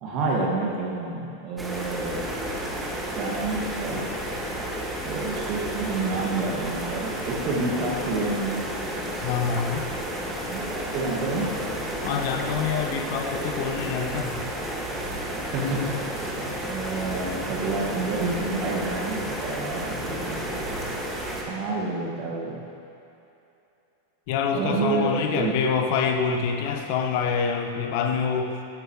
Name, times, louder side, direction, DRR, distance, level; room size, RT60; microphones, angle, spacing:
voice 1, 0.0-2.3 3.1-4.0 5.1-8.6 10.5-11.5 15.5-15.8 16.1-20.4 21.5-22.6 24.5-25.5, right 3 dB, 40° right, -2 dB, 2.2 m, -29 dB
sound 1, 1.6-21.4, right 1 dB, 5° right, 2.2 m, -31 dB
voice 2, 9.2-9.9 12.0-14.4 24.3-28.5, left 6 dB, 45° left, 4 dB, 1.4 m, -26 dB
17.0 x 15.0 x 3.3 m, 2.8 s
figure-of-eight pair, 90°, 0 cm